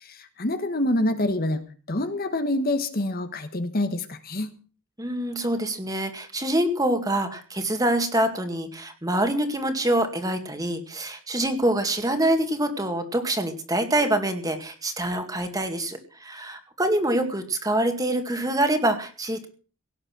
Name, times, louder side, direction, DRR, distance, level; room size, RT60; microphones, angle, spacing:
voice 1, 0.0-1.6 1.9-4.5, left 1 dB, 40° left, 9 dB, 1.3 m, -26 dB
voice 2, 5.0-19.5, right 1 dB, 15° right, 6 dB, 2.1 m, -25 dB
17.5 x 9.8 x 6.1 m, 0.39 s
head